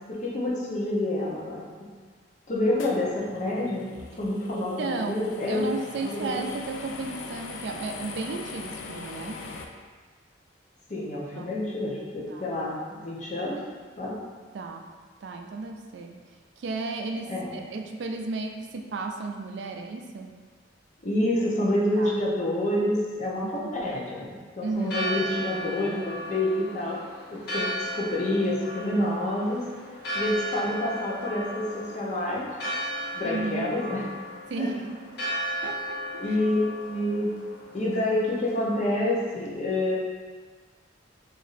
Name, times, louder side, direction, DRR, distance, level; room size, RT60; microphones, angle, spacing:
voice 1, 0.1-1.9 2.5-3.9 4.2-5.7 6.0-6.5 10.9-13.6 14.0-14.2 17.3-17.6 21.0-27.0 27.3-29.7 30.1-32.5 33.1-34.0 34.6-34.7 35.2-35.3 36.2-37.3 37.7-40.0, left 1 dB, 40° left, -4 dB, 0.7 m, -28 dB
sound 1, 2.8-9.7, left 4 dB, 85° left, 0.4 m, -41 dB
voice 2, 4.5-9.4 11.4-11.6 12.3-12.5 14.5-14.9 15.2-16.2 16.6-20.3 22.0-22.2 23.4-23.5 24.6-25.1 33.2-33.7 34.5-34.9 35.6-36.4, right 3 dB, 60° right, 3 dB, 0.3 m, -34 dB
Church bell, 24.7-38.8, equal, 60° left, 0.9 m, -35 dB
3.0 x 2.5 x 4.0 m, 1.5 s
head